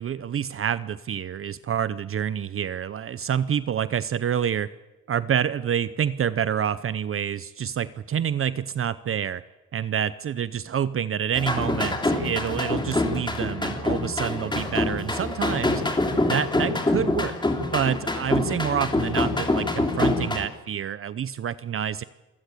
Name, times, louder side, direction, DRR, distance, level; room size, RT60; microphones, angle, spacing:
voice 1, 0.0-4.7 5.1-9.4 9.7-15.8 16.3-17.4 17.7-22.0, right 8 dB, 45° right, 16 dB, 0.7 m, -27 dB
sound 1, 11.3-20.5, left 2 dB, 15° left, 3.0 m, -25 dB
28.0 x 14.5 x 8.4 m, 1.1 s
cardioid pair, 90°, 30 cm